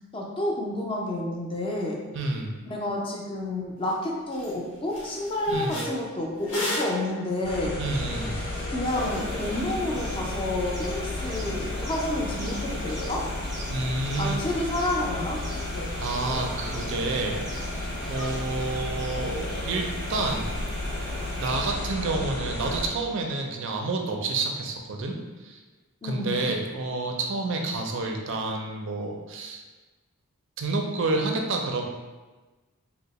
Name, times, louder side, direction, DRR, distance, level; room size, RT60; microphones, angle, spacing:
voice 1, 0.1-2.0 2.6-7.7 8.7-13.2 14.2-15.4 26.0-26.5, left 1 dB, 25° left, -2 dB, 0.4 m, -29 dB
voice 2, 2.1-2.5 5.5-5.8 7.8-8.4 13.7-14.4 16.0-17.8 18.1-20.6 21.4-25.6 26.0-29.6 30.6-31.8, right 2 dB, 60° right, 2 dB, 0.4 m, -29 dB
sound 1, 3.9-4.0 4.3-4.5 4.9-9.6, equal, 80° left, 1.1 m, -36 dB
sound 2, 7.4-22.9, left 1 dB, 55° left, 0.7 m, -32 dB
sound 3, 8.9-21.6, right 1 dB, 20° right, 0.6 m, -43 dB
2.8 x 2.0 x 4.0 m, 1.2 s
head